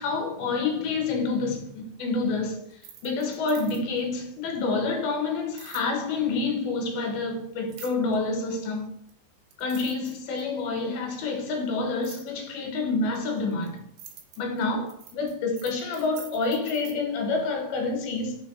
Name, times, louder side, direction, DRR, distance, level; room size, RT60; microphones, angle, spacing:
voice 1, 0.0-8.9 9.6-13.8 14.4-18.4, left 3 dB, 75° left, 2.6 m, -28 dB
sound 1, 2.7-4.1 5.6-5.9 7.7-8.2 9.1-9.2 9.5-10.6 12.0-12.3 13.1-17.0, right 8 dB, 85° right, 2.6 m, -46 dB
6.2 x 2.8 x 3.0 m
omnidirectional pair, 4.6 m